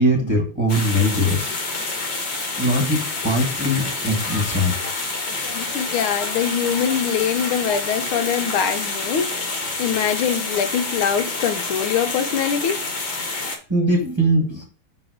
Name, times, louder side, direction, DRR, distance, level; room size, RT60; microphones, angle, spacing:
voice 1, 0.0-1.5 2.5-4.9 13.7-14.6, equal, 15° right, 1.2 m, -21 dB
sound 1, 0.7-13.6, left 3 dB, 55° left, 1.9 m, -28 dB
voice 2, 5.5-9.3 9.8-12.8, left 8 dB, 80° left, 1.5 m, -23 dB
6.2 x 3.4 x 4.9 m
omnidirectional pair, 2.4 m